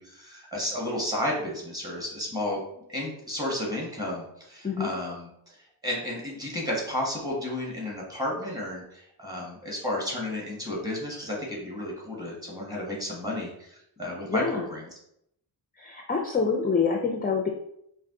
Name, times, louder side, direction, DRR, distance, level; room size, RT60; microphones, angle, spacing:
voice 1, 0.0-2.6 2.9-5.3 5.8-14.9, left 1 dB, 10° right, -3 dB, 1.4 m, -32 dB
voice 2, 14.3-14.7 15.8-17.5, left 5 dB, 20° left, 2 dB, 0.4 m, -26 dB
4.7 x 2.6 x 3.7 m, 0.75 s
wide cardioid pair, 130°, 45 cm